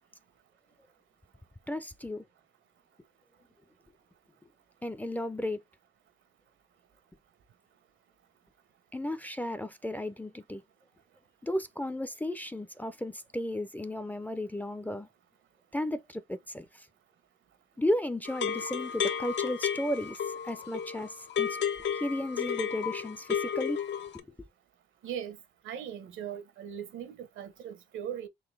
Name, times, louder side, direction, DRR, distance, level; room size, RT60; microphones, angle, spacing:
voice 1, 1.7-2.2 4.8-5.6 8.9-10.6 11.4-15.1 15.7-16.9 17.8-21.6 21.9-23.8 24.1-24.4, left 1 dB, 10° left, 0.4 m, -34 dB
sound 1, 18.3-24.2, left 8 dB, 65° left, 0.6 m, -33 dB
voice 2, 25.0-25.4 25.6-28.3, right 9 dB, 75° right, 1.0 m, -39 dB
3.9 x 2.8 x 3.2 m
cardioid pair, 90°, 20 cm